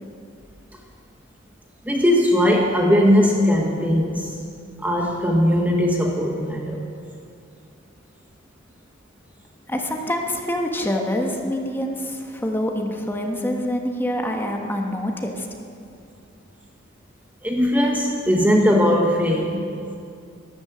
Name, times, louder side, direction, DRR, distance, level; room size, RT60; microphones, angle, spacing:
voice 1, 1.8-4.4 4.8-6.9 17.4-19.7, equal, 10° right, 1 dB, 1.0 m, -19 dB
voice 2, 9.7-15.5, left 1 dB, 10° left, 2 dB, 1.2 m, -26 dB
12.5 x 12.5 x 7.8 m, 2.4 s
head